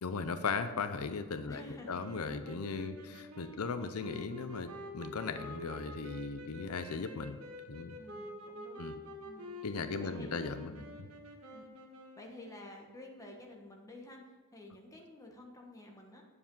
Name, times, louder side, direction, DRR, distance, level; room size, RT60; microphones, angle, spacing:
voice 1, 0.0-1.6 1.9-7.4 7.7-7.9 8.8-8.9 9.6-10.8, left 4 dB, 85° left, 10 dB, 0.6 m, -37 dB
voice 2, 1.5-2.0 2.9-3.1 7.9-8.9 9.2-9.5 10.0-10.3 10.7-11.0 11.5-11.7 12.2-14.2 14.5-16.2, left 1 dB, 15° left, 0 dB, 1.3 m, -51 dB
sound 1, 2.0-12.4, left 1 dB, 80° right, 1.4 m, -48 dB
9.7 x 7.3 x 5.5 m, 1.3 s
head